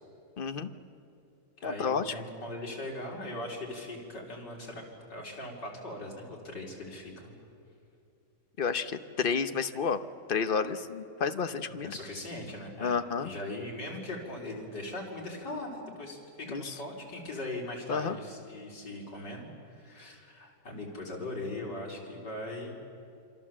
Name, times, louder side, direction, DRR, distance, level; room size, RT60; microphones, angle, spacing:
voice 1, 0.4-0.7 1.6-2.1 8.6-10.0 10.3-12.0 12.8-13.3 16.5-16.6 17.9-18.2, left 5 dB, 45° left, 9 dB, 0.7 m, -30 dB
voice 2, 1.6-4.8 5.1-7.3 11.8-22.8, left 1 dB, 75° left, -2 dB, 4.9 m, -40 dB
27.0 x 25.0 x 7.5 m, 2.7 s
omnidirectional pair, 1.9 m